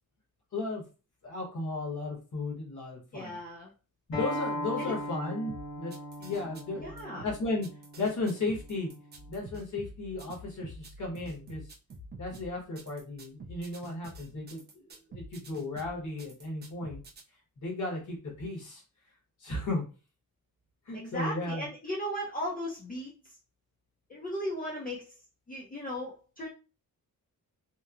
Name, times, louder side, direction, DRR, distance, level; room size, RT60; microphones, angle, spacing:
voice 1, 0.5-0.8 1.2-3.4 4.1-5.9 6.2-6.9 7.2-7.7 8.0-8.9 9.3-11.7 12.2-14.6 15.1-17.0 17.6-18.8 19.4-19.8 20.9-21.7, left 2 dB, 55° left, -2 dB, 1.1 m, -35 dB
voice 2, 3.1-3.7 4.8-4.9 6.8-7.3 20.9-23.4 24.1-25.2 25.5-26.5, equal, 25° left, -4 dB, 0.5 m, -37 dB
Acoustic guitar, 4.1-9.3, left 1 dB, 80° left, 1.3 m, -39 dB
sound 1, 5.5-17.2, right 1 dB, 30° right, 0.4 m, -47 dB
2.9 x 2.0 x 2.4 m, 0.33 s
wide cardioid pair, 175°, 35 cm